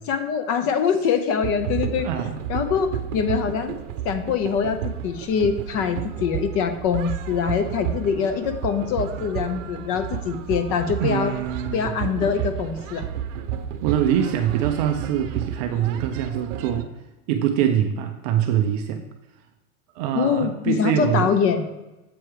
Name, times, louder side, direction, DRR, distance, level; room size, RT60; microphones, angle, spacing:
voice 1, 0.1-2.1 2.5-3.7 4.0-11.3 11.7-13.1 20.1-21.7, left 6 dB, 30° left, 9 dB, 0.7 m, -24 dB
sound 1, 1.4-16.8, right 10 dB, 55° right, 0.8 m, -32 dB
voice 2, 2.0-2.4 11.0-11.9 13.8-16.9 17.3-19.0 20.0-21.3, right 9 dB, 30° right, 6 dB, 0.4 m, -24 dB
7.8 x 4.4 x 4.9 m, 1.0 s
hypercardioid pair, 125°, 44 cm